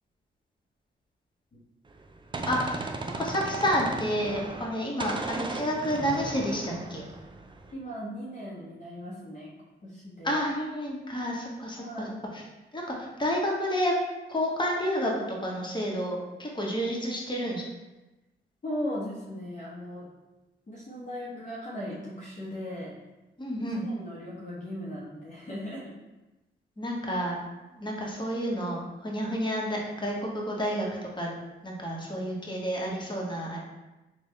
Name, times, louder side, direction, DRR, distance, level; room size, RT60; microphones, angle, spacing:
Gunshot gunfire, 1.9-4.7 5.0-7.7, right 2 dB, 25° right, 0.5 m, -36 dB
voice 1, 2.5-7.1 10.2-12.1 12.7-13.9 14.3-15.1 15.4-17.6 23.4-23.8 26.8-27.4 27.7-31.3 31.6-33.6, equal, 20° left, -2 dB, 1.1 m, -30 dB
voice 2, 7.7-9.6 9.8-10.4 11.7-12.1 18.6-20.1 20.7-23.0 23.7-25.9, equal, 35° left, -6 dB, 0.9 m, -38 dB
3.3 x 2.3 x 4.2 m, 1.1 s
supercardioid pair, 45°, 21 cm